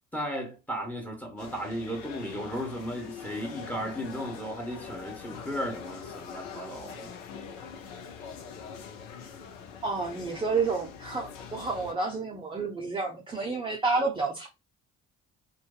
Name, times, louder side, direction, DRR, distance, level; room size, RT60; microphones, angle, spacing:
voice 1, 0.1-7.1, equal, 5° left, 1.1 m, -35 dB
sound 1, 1.4-11.9, left 6 dB, 80° left, 0.6 m, -43 dB
voice 2, 9.8-14.5, right 4 dB, 15° right, 0.5 m, -30 dB
2.5 x 2.4 x 2.3 m
figure-of-eight pair, 45°, 41 cm